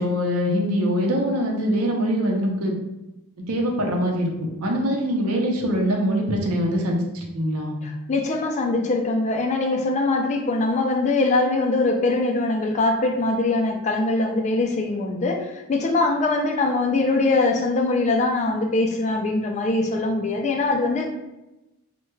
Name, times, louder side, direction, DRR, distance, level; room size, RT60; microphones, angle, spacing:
voice 1, 0.0-2.7 3.5-4.3 4.6-7.7, equal, 70° right, 0 dB, 0.7 m, -23 dB
voice 2, 7.8-21.1, left 2 dB, 30° left, 2 dB, 0.4 m, -22 dB
4.5 x 2.2 x 2.2 m, 0.98 s
head